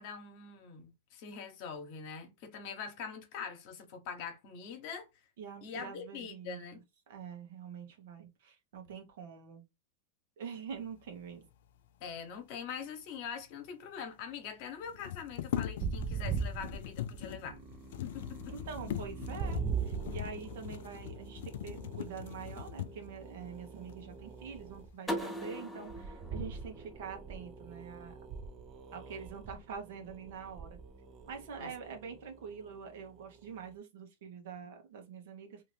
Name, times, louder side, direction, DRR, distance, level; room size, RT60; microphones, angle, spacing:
voice 1, 0.0-5.2 5.6-6.8 12.0-17.6 18.0-18.5 29.5-29.6 31.6-31.7, left 6 dB, 55° left, 1.1 m, -43 dB
voice 2, 5.4-6.6 7.1-9.6 10.4-11.5 18.7-28.1 28.9-30.8 31.3-35.6, right 6 dB, 70° right, 1.0 m, -45 dB
sound 1, 13.4-13.5 13.7-13.8 14.8-23.2 23.9-24.0 24.5-25.1 25.4-26.0, left 11 dB, 70° left, 0.3 m, -41 dB
sound 2, 15.8-24.9 25.9-33.5, right 5 dB, 35° right, 0.6 m, -42 dB
sound 3, 25.1-27.9, equal, 5° left, 0.7 m, -41 dB
2.8 x 2.5 x 3.2 m
hypercardioid pair, 115°, 0 cm